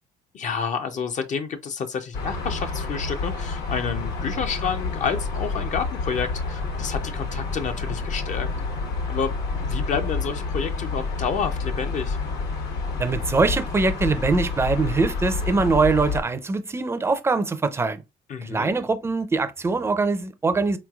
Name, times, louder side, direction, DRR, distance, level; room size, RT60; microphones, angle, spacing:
voice 1, 0.3-8.5 9.1-9.3 9.6-12.2 18.3-18.7, left 6 dB, 45° left, 0.5 m, -29 dB
sound 1, 2.1-16.2, left 4 dB, 75° left, 1.1 m, -29 dB
voice 2, 13.0-18.0 18.4-20.8, right 3 dB, 15° right, 0.4 m, -23 dB
3.8 x 3.1 x 2.3 m
cardioid pair, 110°, 17 cm